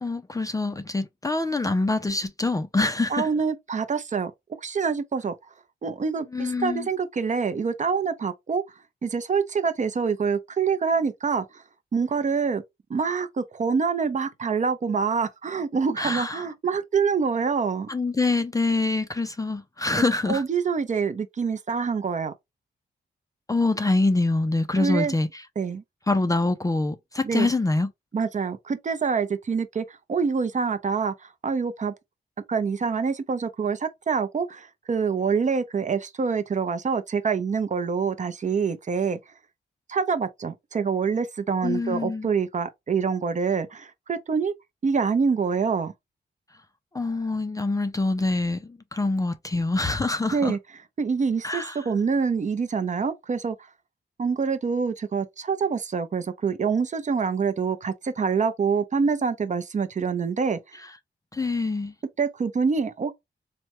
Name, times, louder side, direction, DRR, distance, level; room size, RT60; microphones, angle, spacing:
voice 1, 0.0-3.3 6.3-6.9 16.0-16.5 17.9-20.4 23.5-25.4 26.1-27.9 41.6-42.3 46.9-50.6 51.4-51.8 61.3-61.9, left 2 dB, 20° left, 0.4 m, -25 dB
voice 2, 3.1-4.3 4.6-5.3 5.8-8.6 9.0-11.6 11.9-12.6 12.9-17.9 20.3-22.3 24.8-25.1 25.6-25.8 27.2-27.5 28.1-31.9 32.5-39.2 39.9-44.5 44.8-45.9 50.3-50.6 51.0-53.6 54.2-60.6 62.2-63.1, right 5 dB, 40° right, 0.5 m, -26 dB
3.3 x 2.1 x 2.9 m
cardioid pair, 80°, 19 cm